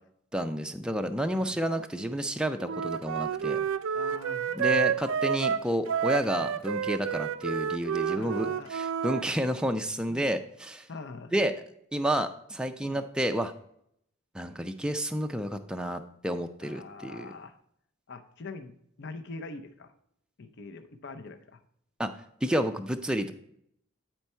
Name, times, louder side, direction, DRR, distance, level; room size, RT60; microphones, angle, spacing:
voice 1, 0.3-3.6 4.5-10.9 11.3-11.5 11.9-13.5 14.3-17.3 22.0-22.1 22.4-23.3, equal, 5° right, 6 dB, 0.4 m, -30 dB
Wind instrument woodwind instrument, 2.6-9.2, right 7 dB, 75° right, 0.4 m, -29 dB
voice 2, 3.9-5.0 7.9-8.7 10.1-10.3 10.9-11.3 12.8-13.0 16.6-17.6 18.1-18.7 19.0-19.9 20.4-21.6, left 3 dB, 55° left, 7 dB, 0.6 m, -44 dB
9.3 x 4.5 x 4.3 m, 0.72 s
head